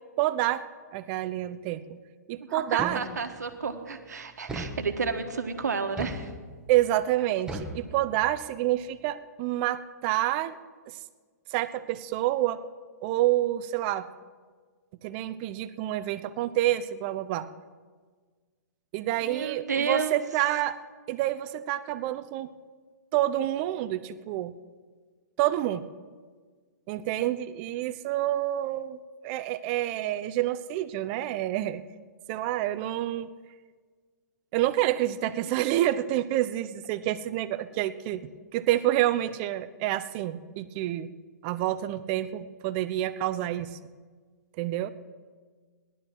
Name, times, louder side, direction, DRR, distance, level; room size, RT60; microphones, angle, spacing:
voice 1, 0.2-0.6 0.9-2.0 2.3-3.0 6.7-10.6 10.9-11.0 11.5-12.6 13.0-14.1 15.0-17.5 18.9-20.8 21.1-22.5 23.1-24.5 25.4-25.9 26.9-31.8 32.3-33.3 34.5-41.1 41.4-43.8 44.6-44.9, right 14 dB, 40° right, 14 dB, 0.7 m, -28 dB
voice 2, 2.4-6.3 19.2-20.2, right 5 dB, 80° right, 7 dB, 1.5 m, -31 dB
sound 1, 2.8-3.5 4.5-5.3 6.0-6.8 7.5-8.5, right 1 dB, 10° right, 1.5 m, -38 dB
18.0 x 11.5 x 4.6 m, 1.5 s
hypercardioid pair, 125°, 9 cm